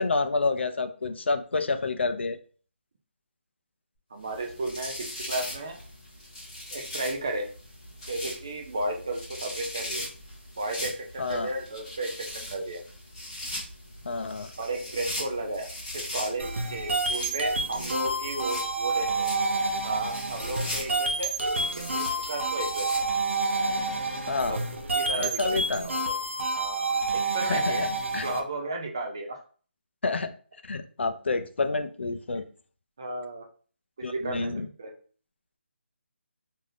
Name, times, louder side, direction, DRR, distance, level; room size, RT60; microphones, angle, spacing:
voice 1, 0.0-2.4 11.2-11.5 14.1-14.5 24.3-24.6 25.2-25.9 27.5-27.9 28.1-28.3 30.0-30.3 30.7-32.4 34.0-34.7, left 3 dB, 65° left, 9 dB, 0.4 m, -28 dB
voice 2, 4.1-4.9 5.3-5.8 6.7-7.5 8.1-10.1 10.6-12.8 14.6-15.7 15.9-19.3 19.8-21.3 21.8-22.0 22.3-22.9 24.5-26.2 26.5-27.9 28.2-29.4 33.0-33.4 34.1-34.9, right 2 dB, 25° right, 1 dB, 0.4 m, -33 dB
sound 1, 4.3-23.5, left 1 dB, 20° left, 1.3 m, -40 dB
sound 2, 16.4-28.4, right 2 dB, 80° right, 0.7 m, -29 dB
3.2 x 2.7 x 2.5 m, 0.42 s
hypercardioid pair, 180°, 7 cm